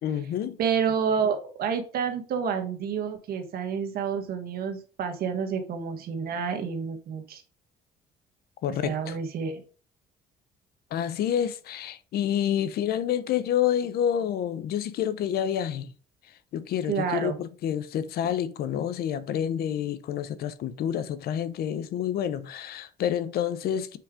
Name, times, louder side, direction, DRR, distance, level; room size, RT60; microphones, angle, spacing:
voice 1, 0.0-0.6 8.6-9.2 10.9-15.9 16.5-24.0, left 9 dB, 65° left, 0.7 m, -28 dB
voice 2, 0.6-7.4 8.8-9.6 16.9-17.4, right 6 dB, 65° right, 1.5 m, -29 dB
7.5 x 4.9 x 3.7 m
cardioid pair, 110°, 17 cm